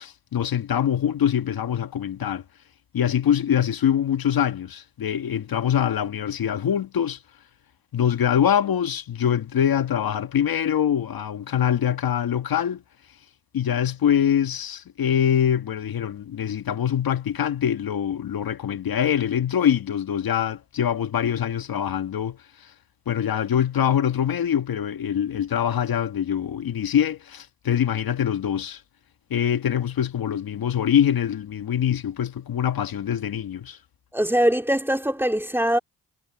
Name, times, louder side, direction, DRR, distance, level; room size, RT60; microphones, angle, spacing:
voice 1, 0.0-2.4 2.9-7.2 7.9-12.8 13.5-22.7 23.1-28.8 29.3-33.8, left 9 dB, 55° left, 1.7 m, -24 dB
voice 2, 34.1-35.8, equal, 5° right, 3.3 m, -22 dB
supercardioid pair, 60°, 42 cm